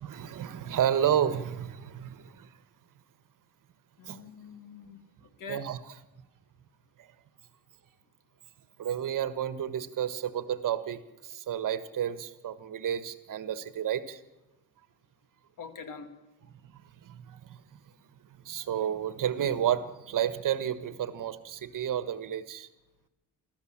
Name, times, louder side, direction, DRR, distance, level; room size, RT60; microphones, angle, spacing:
voice 1, 0.0-2.6 4.1-4.2 5.5-5.8 7.0-7.1 8.8-14.2 16.7-17.8 18.3-22.7, right 9 dB, 60° right, 12 dB, 1.5 m, -31 dB
voice 2, 4.0-5.7 15.6-16.2, left 5 dB, 60° left, 8 dB, 2.4 m, -45 dB
25.5 x 14.0 x 7.4 m, 1.0 s
cardioid pair, 85°, 36 cm